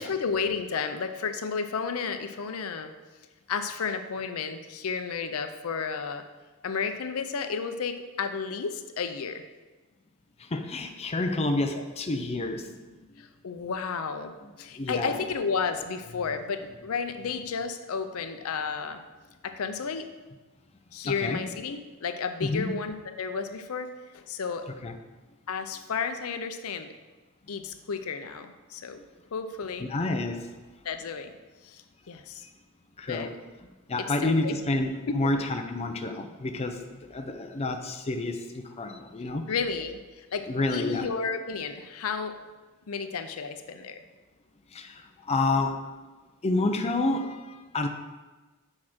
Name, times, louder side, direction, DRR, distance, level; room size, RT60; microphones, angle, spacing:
voice 1, 0.0-2.9 3.5-6.2 6.6-9.4 11.7-11.8 13.2-19.0 19.4-20.1 20.9-24.7 25.5-26.9 27.5-29.0 29.3-29.9 30.8-31.3 31.6-32.5 33.1-33.3 34.2-34.6 35.0-35.1 39.5-42.4 42.9-44.0, left 5 dB, 75° left, 8 dB, 0.5 m, -32 dB
voice 2, 10.4-12.7 14.4-15.2 21.0-21.4 22.4-22.7 24.8-25.0 29.9-30.5 32.4-32.5 33.0-33.3 33.9-39.5 40.5-41.1 44.7-45.9 46.4-47.9, left 2 dB, 30° left, 5 dB, 0.5 m, -29 dB
6.4 x 4.8 x 6.0 m, 1.2 s
head